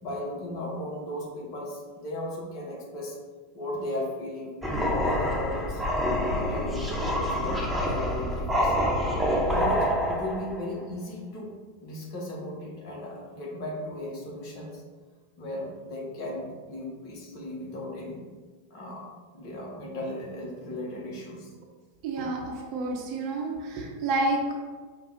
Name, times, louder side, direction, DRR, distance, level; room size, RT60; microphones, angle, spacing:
voice 1, 0.0-3.2 3.5-5.8 6.3-8.9 9.5-11.5 11.8-14.8 15.4-18.2 18.7-21.5, left 1 dB, 40° left, -1 dB, 1.1 m, -36 dB
sound 1, 4.6-10.6, equal, 5° right, 0.6 m, -27 dB
voice 2, 22.0-22.4 22.7-24.5, right 2 dB, 40° right, -1 dB, 0.9 m, -29 dB
5.1 x 2.3 x 4.0 m, 1.4 s
figure-of-eight pair, 90°, 0 cm